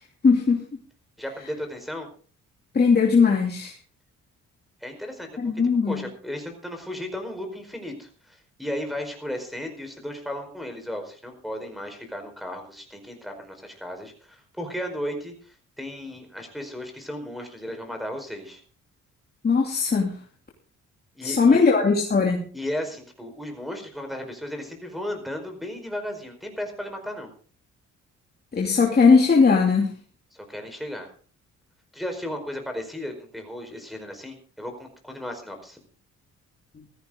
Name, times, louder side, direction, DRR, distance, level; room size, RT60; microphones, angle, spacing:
voice 1, 0.2-0.6 2.7-3.7 5.4-6.0 19.4-20.1 21.2-22.4 28.5-29.9, left 5 dB, 30° left, -1 dB, 2.8 m, -19 dB
voice 2, 1.2-2.1 4.8-5.5 5.9-18.6 21.1-21.6 22.5-27.3 30.3-31.1 31.9-35.8, left 1 dB, ahead, 3 dB, 4.8 m, -35 dB
16.5 x 14.0 x 3.9 m, 0.41 s
cardioid pair, 90°, 30 cm